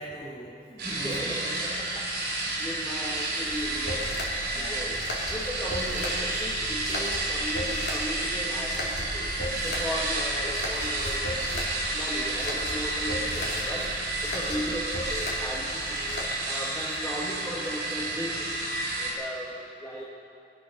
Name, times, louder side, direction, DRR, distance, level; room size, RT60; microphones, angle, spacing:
voice 1, 0.0-1.3 4.5-4.9 13.6-14.8, right 1 dB, 35° left, -4 dB, 4.4 m, -43 dB
voice 2, 0.7-2.1 2.6-4.1 4.6-5.0 5.3-9.3 9.6-11.2 11.9-13.9 14.2-16.1 16.5-18.5 19.0-20.0, equal, 10° left, -7 dB, 1.5 m, -36 dB
sound 1, 0.8-19.1, right 2 dB, 70° right, 4.3 m, -31 dB
sound 2, 3.5-16.2, left 1 dB, 70° left, 2.8 m, -36 dB
23.0 x 8.7 x 5.9 m, 2.5 s
head